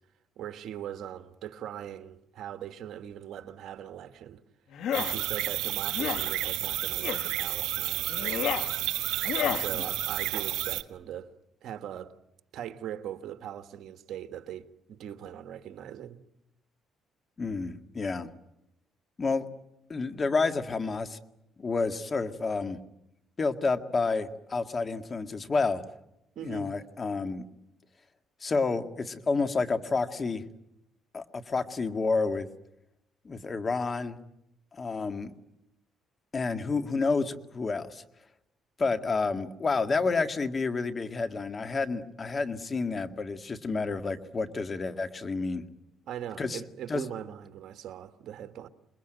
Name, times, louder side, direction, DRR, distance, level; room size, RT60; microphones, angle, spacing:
voice 1, 0.4-4.4 5.0-8.1 9.4-11.3 11.6-12.1 12.5-16.2 26.3-26.7 46.1-48.7, right 10 dB, 70° right, 1.6 m, -40 dB
sound 1, 4.7-5.1 5.9-6.3 7.0-7.3 8.1-8.7 9.2-9.7, left 9 dB, 75° left, 1.7 m, -31 dB
sound 2, 4.9-10.8, right 15 dB, 90° right, 1.3 m, -31 dB
voice 2, 17.4-18.3 19.2-19.5 19.9-21.2 21.6-22.8 23.4-25.8 26.4-27.4 28.4-30.4 31.1-32.5 33.2-34.2 34.7-35.3 36.3-38.0 38.8-45.6 46.4-46.6 46.9-47.0, left 4 dB, 30° left, 1.9 m, -29 dB
28.0 x 21.5 x 9.2 m
cardioid pair, 100°, 0 cm